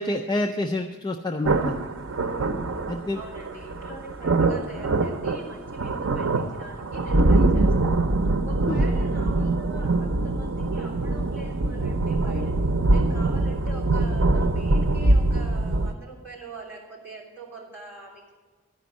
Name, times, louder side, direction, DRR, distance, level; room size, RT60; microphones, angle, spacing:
voice 1, 0.0-1.8 2.9-3.2 8.7-8.9, left 1 dB, 20° left, 3 dB, 0.3 m, -28 dB
sound 1, 1.4-15.9, right 2 dB, 90° right, 0.6 m, -23 dB
voice 2, 3.1-8.0 8.4-12.5 12.9-18.3, right 2 dB, 10° right, -6 dB, 3.4 m, -43 dB
12.5 x 5.2 x 8.4 m, 1.4 s
head